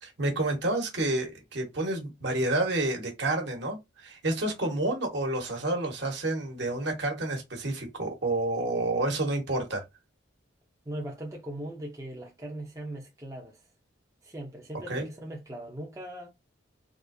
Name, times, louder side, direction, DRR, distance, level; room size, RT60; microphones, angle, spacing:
voice 1, 0.0-9.8 14.9-15.1, right 2 dB, 60° right, 1.2 m, -29 dB
voice 2, 10.9-13.6 14.2-16.3, right 1 dB, 15° right, 0.6 m, -39 dB
3.5 x 2.5 x 2.6 m
head